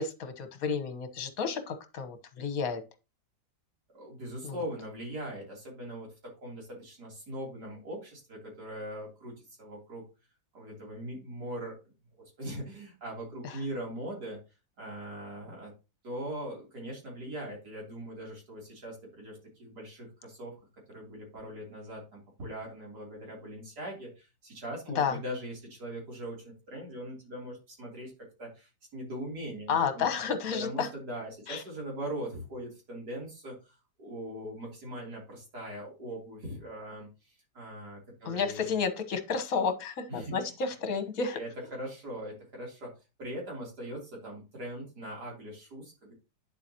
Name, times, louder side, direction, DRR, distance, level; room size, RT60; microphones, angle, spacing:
voice 1, 0.0-2.8 4.4-4.6 24.9-25.2 29.7-30.9 31.5-31.6 38.2-41.4, left 5 dB, 60° left, 7 dB, 1.5 m, -31 dB
voice 2, 3.9-10.0 10.5-11.7 12.4-14.4 14.8-15.7 16.0-20.6 20.9-28.1 28.4-30.1 30.6-38.7 40.1-40.5 41.3-42.9 43.2-46.1, right 1 dB, 70° right, -2 dB, 3.7 m, -41 dB
9.4 x 7.1 x 2.8 m, 0.28 s
omnidirectional pair, 1.8 m